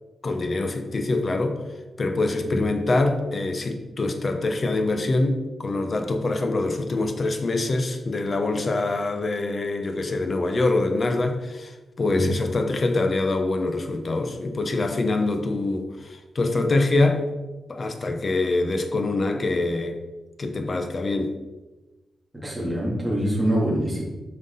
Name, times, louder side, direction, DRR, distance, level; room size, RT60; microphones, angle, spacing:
voice 1, 0.2-1.6 2.0-17.3 17.7-20.0 20.4-21.3, left 2 dB, 40° left, 6 dB, 1.0 m, -24 dB
voice 2, 22.4-24.0, equal, 10° right, -5 dB, 3.1 m, -24 dB
9.4 x 5.8 x 4.1 m, 1.1 s
wide cardioid pair, 115°, 0 cm